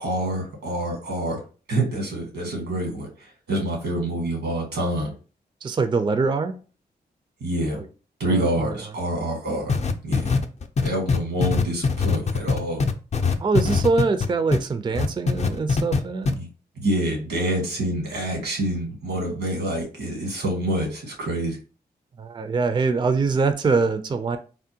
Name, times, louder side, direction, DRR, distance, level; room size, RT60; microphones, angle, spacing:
voice 1, 0.0-1.4 1.7-5.1 7.4-7.8 8.2-9.7 10.0-10.3 10.8-12.8 16.2-16.5 16.8-21.6, right 1 dB, 90° right, 1.2 m, -27 dB
voice 2, 5.6-6.6 7.8-7.9 8.3-8.8 13.4-16.3 22.2-24.4, right 4 dB, 25° right, 0.3 m, -23 dB
sound 1, 9.7-14.6 15.0-16.0 16.3-16.4, left 4 dB, 40° left, 0.4 m, -21 dB
3.5 x 2.1 x 2.7 m
cardioid pair, 55°, 17 cm